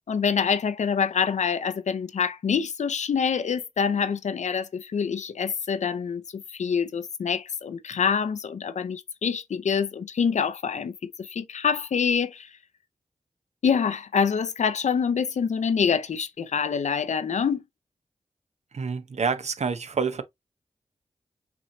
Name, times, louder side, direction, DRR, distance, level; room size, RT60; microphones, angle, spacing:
voice 1, 0.1-12.5 13.6-17.6, left 6 dB, 75° left, 0.6 m, -26 dB
voice 2, 18.7-20.2, right 5 dB, 65° right, 0.8 m, -27 dB
6.0 x 3.0 x 2.7 m
cardioid pair, 50°, 12 cm